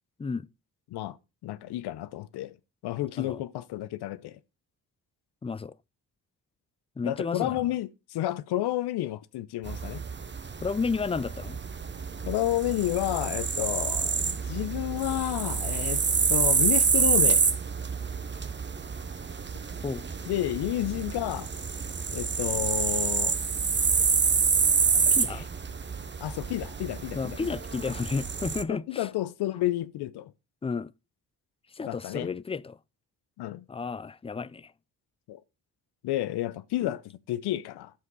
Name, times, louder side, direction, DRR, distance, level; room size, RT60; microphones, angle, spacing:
voice 1, 1.4-2.5 2.8-4.4 7.0-10.0 12.3-16.0 16.3-17.5 20.3-21.5 22.1-23.4 24.9-25.0 26.2-27.2 28.7-30.3 31.8-32.3 33.4-33.7 35.3-35.4 36.0-37.0 37.3-37.9, left 14 dB, 85° left, 0.7 m, -30 dB
voice 2, 5.4-5.7 7.0-7.7 10.6-11.6 19.8-20.0 25.1-25.5 27.1-29.1 30.6-30.9 31.7-32.8 33.7-34.7 36.8-36.9, left 5 dB, 15° left, 0.4 m, -32 dB
sound 1, 9.7-28.6, right 5 dB, 30° right, 0.8 m, -27 dB
8.4 x 7.4 x 3.8 m
supercardioid pair, 60°, 38 cm